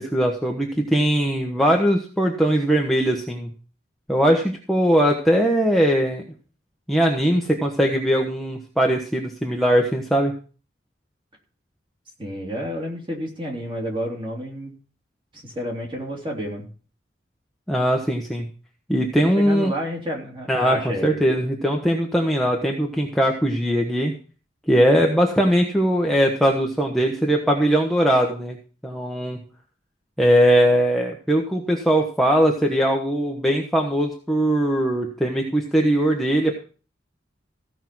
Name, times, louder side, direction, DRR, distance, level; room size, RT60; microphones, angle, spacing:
voice 1, 0.0-3.5 4.1-6.2 6.9-10.3 17.7-18.5 18.9-19.7 20.5-24.1 24.7-28.6 28.8-29.4 30.2-36.6, equal, ahead, 0 dB, 1.1 m, -20 dB
voice 2, 12.2-14.7 15.4-16.7 19.0-21.2, equal, 25° right, 0 dB, 3.1 m, -30 dB
15.5 x 5.6 x 6.1 m, 0.38 s
head